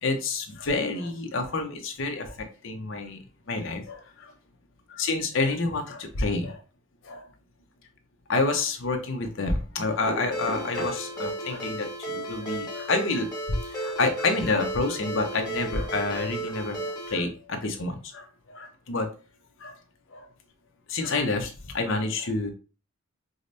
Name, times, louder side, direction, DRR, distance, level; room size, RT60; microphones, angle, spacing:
voice 1, 0.0-3.2 3.5-4.3 4.9-6.6 7.0-7.3 8.3-13.3 13.6-19.1 19.6-19.8 20.1-20.3 20.9-22.5, left 3 dB, 60° left, 5 dB, 0.7 m, -28 dB
Ringtone, 10.3-17.2, right 1 dB, 20° left, 1.0 m, -34 dB
4.9 x 2.0 x 2.6 m, 0.35 s
head